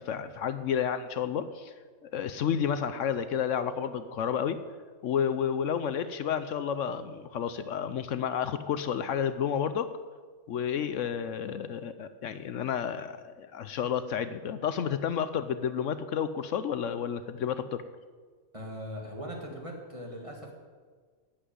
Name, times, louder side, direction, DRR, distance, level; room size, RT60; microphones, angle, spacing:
voice 1, 0.0-1.7 2.1-4.6 5.0-9.9 10.5-17.8, left 8 dB, 70° left, 12 dB, 0.9 m, -31 dB
voice 2, 18.5-20.5, equal, 20° right, 0 dB, 2.3 m, -40 dB
10.0 x 7.9 x 9.2 m, 1.5 s
omnidirectional pair, 1.5 m